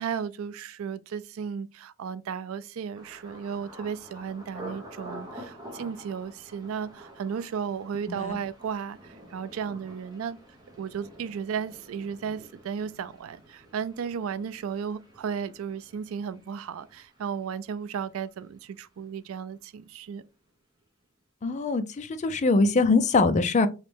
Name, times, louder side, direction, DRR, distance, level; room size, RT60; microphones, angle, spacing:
voice 1, 0.0-10.4 10.8-20.2, right 7 dB, 85° right, 0.4 m, -34 dB
Thunder, 2.9-18.7 19.0-19.6 20.0-20.3, right 1 dB, 20° right, 1.0 m, -48 dB
voice 2, 21.4-23.7, left 3 dB, 35° left, 0.4 m, -23 dB
3.2 x 3.0 x 3.2 m
head